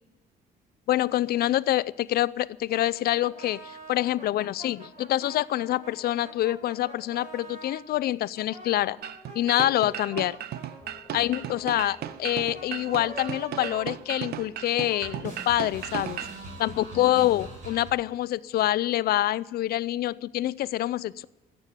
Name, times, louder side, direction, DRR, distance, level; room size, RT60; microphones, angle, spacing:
voice 1, 0.9-9.0 9.3-10.4 11.1-16.2 16.6-21.2, left 14 dB, 65° left, 20 dB, 0.5 m, -26 dB
sound 1, 2.7-7.9 8.3-14.6 14.9-17.9, right 2 dB, 50° right, 4.5 m, -44 dB
sound 2, 9.0-16.4, right 11 dB, 70° right, 0.6 m, -36 dB
sound 3, 9.8-16.1, left 4 dB, 15° left, 1.3 m, -54 dB
14.0 x 8.9 x 8.2 m, 1.1 s
cardioid pair, 95°, 17 cm